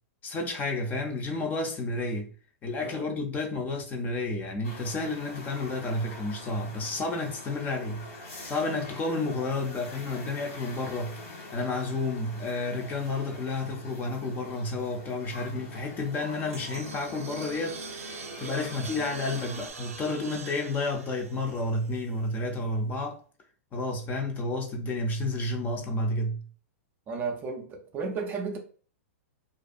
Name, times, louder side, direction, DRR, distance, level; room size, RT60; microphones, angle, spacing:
voice 1, 0.2-2.3 2.6-23.2 23.7-26.4, left 2 dB, 25° left, 0.5 m, -31 dB
sound 1, 4.6-19.7, left 2 dB, 75° left, 1.5 m, -44 dB
sound 2, 16.1-22.4, right 6 dB, 85° right, 0.4 m, -44 dB
voice 2, 27.1-28.6, right 4 dB, 25° right, 0.4 m, -33 dB
2.5 x 2.2 x 2.5 m
hypercardioid pair, 130°, 8 cm